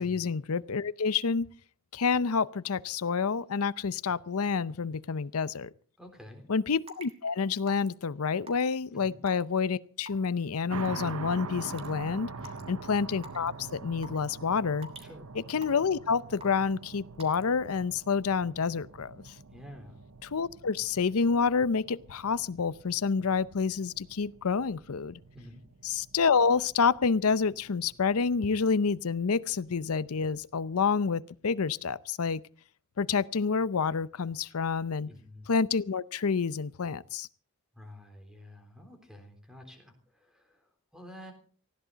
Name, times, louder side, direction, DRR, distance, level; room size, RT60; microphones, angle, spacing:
voice 1, 0.0-1.5 1.9-5.7 6.5-12.3 12.7-14.9 15.5-19.3 20.3-25.2 25.8-32.4 33.0-35.1 35.5-37.3, left 5 dB, 80° left, 0.6 m, -28 dB
voice 2, 6.0-6.5 8.9-9.2 12.3-12.8 15.0-15.3 19.5-20.0 25.3-25.7 35.1-35.5 37.7-41.3, left 1 dB, 5° right, 3.5 m, -50 dB
Raindrop / Water tap faucet / Drip, 6.9-7.1 7.7-7.9 8.5-8.7 9.3-9.6 10.1-10.3 10.8-11.0 11.6-11.9 12.4-12.6 13.2-13.5 14.0-14.3 14.8-15.1 15.6-15.9 16.4-16.7 17.2-17.4, right 1 dB, 25° right, 2.2 m, -45 dB
sound 1, 10.7-30.4, right 4 dB, 80° right, 0.8 m, -46 dB
19.0 x 16.0 x 4.0 m
head